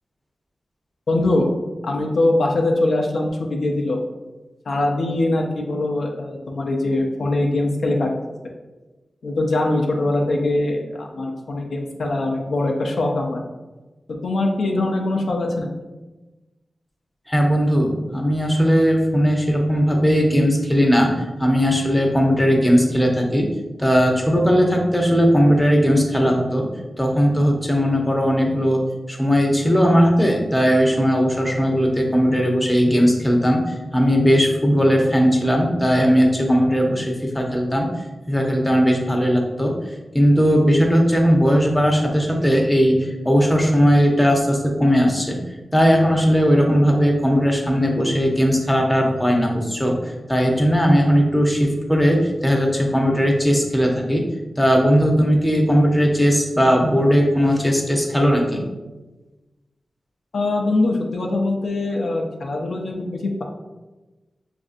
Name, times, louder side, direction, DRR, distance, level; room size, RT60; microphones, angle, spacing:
voice 1, 1.1-1.5 1.8-4.0 4.7-8.1 9.2-13.4 14.2-15.7 60.3-63.4, left 2 dB, 75° left, 1 dB, 0.5 m, -22 dB
voice 2, 17.3-23.5 23.8-26.7 27.0-28.8 29.1-37.9 38.3-39.8 40.1-45.4 45.7-54.3 54.6-58.6, equal, 10° left, 0 dB, 0.6 m, -18 dB
5.0 x 2.5 x 2.5 m, 1.2 s
wide cardioid pair, 80°, 0 cm